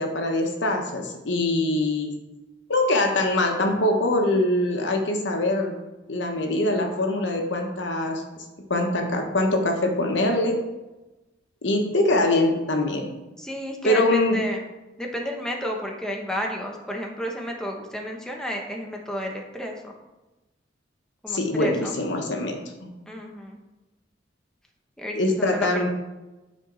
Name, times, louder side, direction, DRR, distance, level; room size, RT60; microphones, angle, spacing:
voice 1, 0.0-2.1 2.7-5.7 6.1-8.2 8.7-10.6 11.6-13.1 13.8-14.4 21.3-22.9 25.2-25.9, left 1 dB, 80° left, 3 dB, 1.1 m, -23 dB
voice 2, 13.4-14.6 15.0-19.9 21.2-21.9 23.1-23.6 25.0-25.9, equal, 5° left, 0 dB, 0.9 m, -32 dB
9.8 x 4.5 x 3.9 m, 1.1 s
head